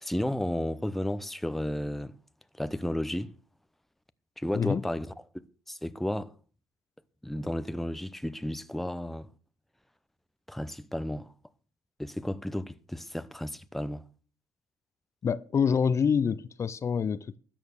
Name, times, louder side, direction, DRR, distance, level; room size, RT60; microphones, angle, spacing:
voice 1, 0.0-2.2 2.6-3.3 4.4-5.1 5.3-6.3 7.2-9.3 10.5-11.3 12.0-14.0, left 1 dB, 5° left, 0.7 m, -33 dB
voice 2, 15.2-17.4, left 6 dB, 40° left, 0.6 m, -26 dB
13.0 x 9.0 x 6.5 m
cardioid pair, 90°, 7 cm